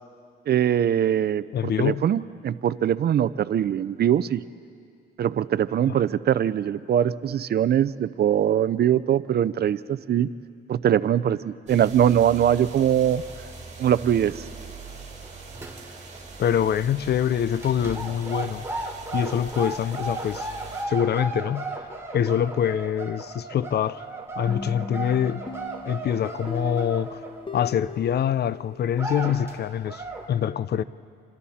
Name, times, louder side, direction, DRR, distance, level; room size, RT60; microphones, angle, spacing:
voice 1, 0.5-4.4 5.2-10.3 10.7-13.2 13.8-14.4, right 10 dB, 55° right, 0.6 m, -22 dB
voice 2, 1.5-2.1 5.9-6.0 16.4-20.5 20.9-21.7 22.1-24.0 24.4-25.4 25.9-27.2 27.5-30.8, left 9 dB, 55° left, 0.6 m, -25 dB
sound 1, 11.7-20.8, right 4 dB, 35° right, 5.3 m, -42 dB
sound 2, 15.2-16.2 16.4-16.7 17.5-28.0 28.5-28.6 28.9-29.5 29.9-30.3, right 2 dB, 15° right, 3.3 m, -35 dB
sound 3, 24.5-29.2, left 3 dB, 25° left, 1.3 m, -39 dB
27.5 x 27.0 x 4.3 m
cardioid pair, 90°, 20 cm